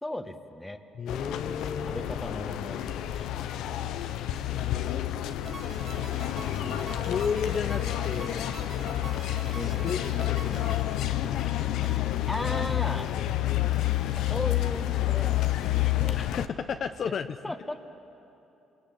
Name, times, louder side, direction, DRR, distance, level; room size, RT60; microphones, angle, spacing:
voice 1, 0.0-0.8 1.9-3.3 9.5-10.2 12.3-13.1 14.3-16.2 17.0-17.1 17.4-17.8, left 1 dB, 10° left, 7 dB, 1.7 m, -37 dB
voice 2, 0.9-2.1 4.5-5.0 6.9-8.4 9.6-10.9 16.2-17.4, left 6 dB, 55° left, 8 dB, 0.8 m, -33 dB
sound 1, 1.1-16.5, left 13 dB, 80° left, 0.9 m, -29 dB
sound 2, 5.4-11.7, right 4 dB, 55° right, 3.9 m, -44 dB
sound 3, 6.6-6.9 7.2-7.5 7.7-8.6 8.9-12.1 12.4-13.3 13.6-15.8, right 2 dB, 20° right, 2.2 m, -48 dB
28.0 x 22.5 x 8.7 m, 2.8 s
cardioid pair, 85°, 0 cm